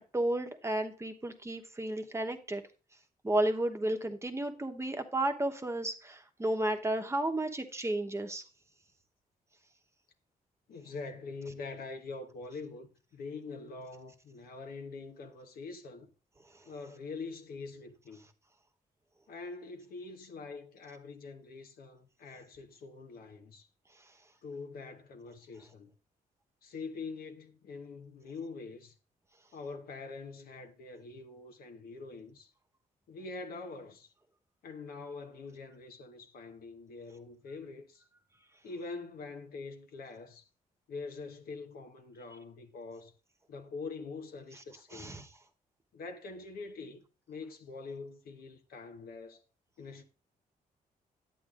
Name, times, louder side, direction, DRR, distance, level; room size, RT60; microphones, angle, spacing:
voice 1, 0.1-2.6 3.2-8.4 44.9-45.3, right 1 dB, 20° right, 0.9 m, -32 dB
voice 2, 10.7-16.1 16.7-18.3 19.3-23.7 24.4-25.9 26.6-28.9 29.5-32.5 33.1-34.1 34.6-38.0 38.6-40.4 40.9-43.1 43.5-45.2 45.9-49.4 49.8-50.0, left 4 dB, 80° left, 1.1 m, -44 dB
10.5 x 8.6 x 2.4 m
cardioid pair, 85°, 15 cm